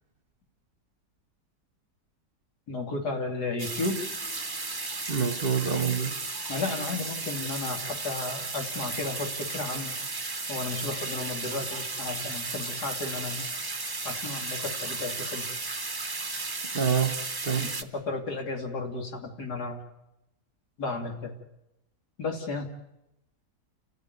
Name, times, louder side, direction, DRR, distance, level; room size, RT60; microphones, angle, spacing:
voice 1, 2.7-4.0 6.5-9.9 10.5-13.4 14.0-15.5 17.6-19.8 20.8-21.3 22.2-22.7, left 3 dB, 75° left, 3.2 m, -33 dB
sound 1, 3.6-17.8, right 3 dB, 20° right, 0.8 m, -34 dB
voice 2, 5.1-6.1 16.6-17.7, right 6 dB, 40° right, 1.1 m, -27 dB
29.5 x 14.0 x 9.4 m
omnidirectional pair, 1.7 m